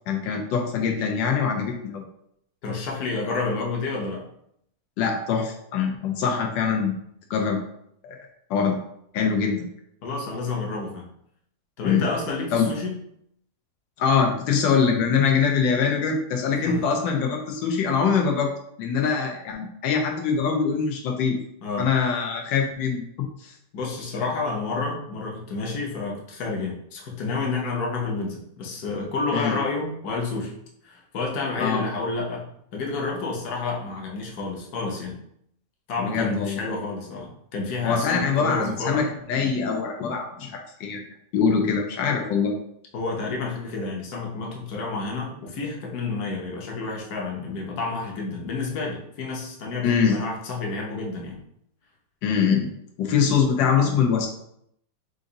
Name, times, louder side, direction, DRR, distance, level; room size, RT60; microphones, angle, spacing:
voice 1, 0.1-2.0 5.0-6.9 7.3-7.6 8.0-8.2 8.5-8.8 9.1-9.6 11.8-12.1 12.5-12.7 14.0-18.5 18.8-21.4 21.8-23.0 23.4-23.5 29.3-29.6 31.6-31.9 36.0-36.6 37.8-41.0 41.3-42.6 49.8-50.2 52.2-52.7 53.0-54.3, left 6 dB, 90° left, 2 dB, 1.4 m, -23 dB
voice 2, 2.6-4.2 10.0-11.1 11.8-13.0 16.6-16.8 21.6-21.9 23.7-30.5 30.8-35.2 35.9-39.1 42.9-51.4, left 3 dB, 60° left, -1 dB, 1.3 m, -30 dB
4.8 x 2.6 x 3.9 m, 0.72 s
omnidirectional pair, 1.9 m